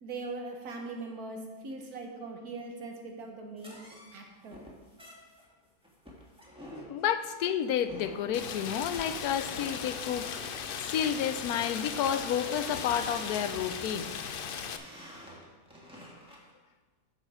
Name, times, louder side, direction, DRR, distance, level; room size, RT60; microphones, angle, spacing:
voice 1, 0.0-1.4 1.6-3.8 4.1-4.6, right 3 dB, 80° right, 2 dB, 1.7 m, -40 dB
sound 1, 3.6-16.5, equal, 5° right, 1.4 m, -50 dB
voice 2, 6.9-10.4 10.8-14.1, left 9 dB, 90° left, 11 dB, 1.1 m, -30 dB
Rain, 8.3-14.8, left 7 dB, 70° left, 0.5 m, -38 dB
8.6 x 6.7 x 4.9 m, 1.3 s
omnidirectional pair, 1.6 m